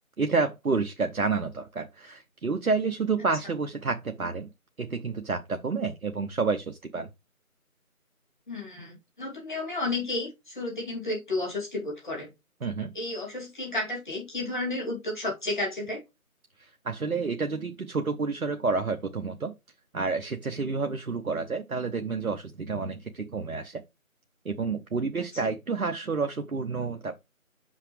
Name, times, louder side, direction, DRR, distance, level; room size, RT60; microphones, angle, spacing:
voice 1, 0.2-4.5 4.8-7.1 12.6-12.9 16.6-19.5 19.9-23.8 24.4-27.2, right 4 dB, 75° right, 0.9 m, -29 dB
voice 2, 8.5-12.3 12.9-16.0, left 2 dB, 35° left, 2.6 m, -32 dB
5.9 x 5.7 x 3.1 m
figure-of-eight pair, 165°, 43 cm